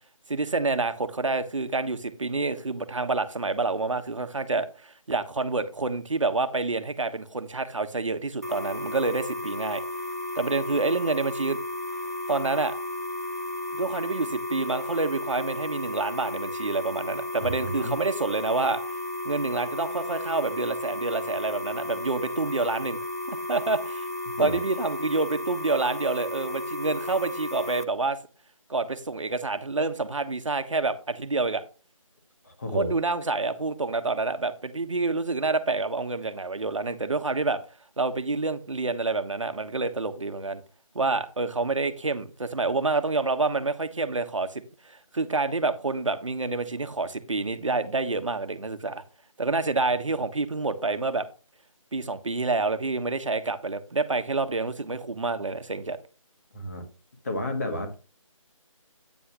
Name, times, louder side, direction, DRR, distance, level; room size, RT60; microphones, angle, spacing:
voice 1, 0.3-9.8 10.3-11.6 12.3-12.7 13.7-18.8 19.2-23.0 23.3-24.1 24.4-28.2 28.7-31.6 32.7-37.6 38.0-40.6 40.9-49.0 49.4-51.3 51.9-56.0, right 3 dB, 65° right, 9 dB, 1.2 m, -28 dB
sound 1, 8.4-27.8, left 1 dB, 30° right, 0.4 m, -33 dB
voice 2, 17.4-17.9 24.3-24.6 32.4-32.9 56.5-56.8 57.2-57.9, left 1 dB, 30° left, 3 dB, 1.6 m, -31 dB
9.2 x 8.1 x 2.9 m, 0.34 s
figure-of-eight pair, 180°, 18 cm